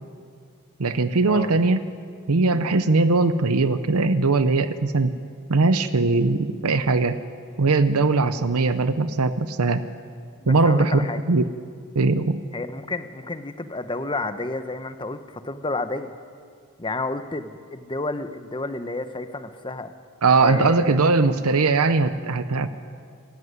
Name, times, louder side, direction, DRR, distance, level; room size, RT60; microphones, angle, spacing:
voice 1, 0.8-1.9 2.3-5.1 5.5-7.2 7.6-9.8 10.5-11.5 11.9-12.4 20.2-22.7, right 3 dB, 75° right, 11 dB, 0.8 m, -20 dB
voice 2, 10.4-11.3 12.5-16.1 16.8-19.9 20.4-21.0, left 2 dB, 20° left, 10 dB, 0.9 m, -31 dB
23.5 x 13.5 x 9.6 m, 2.2 s
head